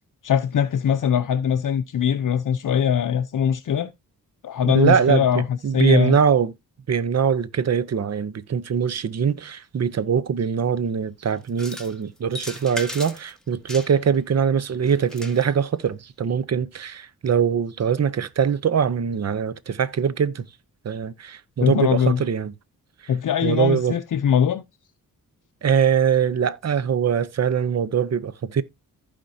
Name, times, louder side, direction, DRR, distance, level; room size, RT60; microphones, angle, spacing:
voice 1, 0.2-3.9 4.4-6.2 21.6-22.2 23.1-24.6, left 8 dB, 60° left, 0.6 m, -21 dB
voice 2, 4.6-5.3 5.6-6.5 6.9-20.4 20.8-22.5 23.4-23.9 25.6-28.6, right 7 dB, 50° right, 0.7 m, -22 dB
sound 1, 11.5-11.9 12.3-13.3 13.7-14.2 14.9-15.5, left 1 dB, ahead, 1.6 m, -36 dB
15.0 x 5.1 x 2.7 m
wide cardioid pair, 90°, 35 cm